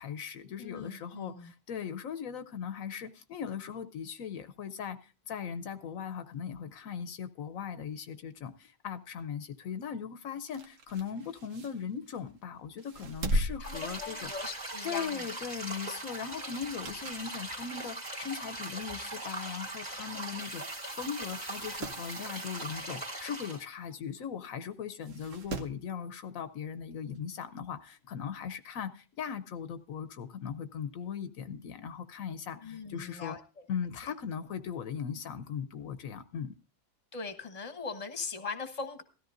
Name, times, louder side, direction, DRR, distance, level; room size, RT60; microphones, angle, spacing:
voice 1, 0.0-14.3 14.8-33.4 33.7-36.5, left 7 dB, 80° left, 1.2 m, -39 dB
voice 2, 0.6-1.5 13.6-15.2 32.6-33.4 37.1-39.0, left 4 dB, 30° left, 1.2 m, -40 dB
sound 1, 10.4-12.3 12.8-14.7 15.0-15.2 16.5-17.4 17.8-17.9 18.8-18.9 19.1-19.2 19.4-19.5 20.4-20.6 20.9-21.0 21.4-22.1 23.9-24.0 25.0-25.9 27.2-27.3, equal, 70° right, 1.3 m, -37 dB
sound 2, 13.6-23.7, right 2 dB, 30° right, 2.2 m, -40 dB
sound 3, 20.4-23.1, right 5 dB, 50° right, 1.1 m, -50 dB
16.5 x 13.5 x 2.5 m
omnidirectional pair, 1.4 m